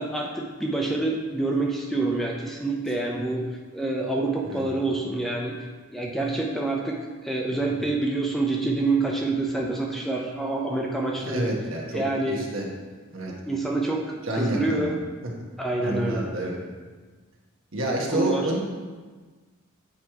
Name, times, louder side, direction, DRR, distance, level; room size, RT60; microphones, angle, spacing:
voice 1, 0.0-3.4 3.7-5.6 5.9-7.0 7.2-11.5 11.9-12.6 13.5-15.0 15.6-16.3 18.1-18.5, right 2 dB, ahead, -1 dB, 0.5 m, -27 dB
voice 2, 11.2-12.7 13.1-13.3 14.2-14.9 15.8-16.6 17.7-18.6, right 1 dB, 75° right, -2 dB, 1.2 m, -28 dB
8.2 x 3.0 x 4.6 m, 1.4 s
head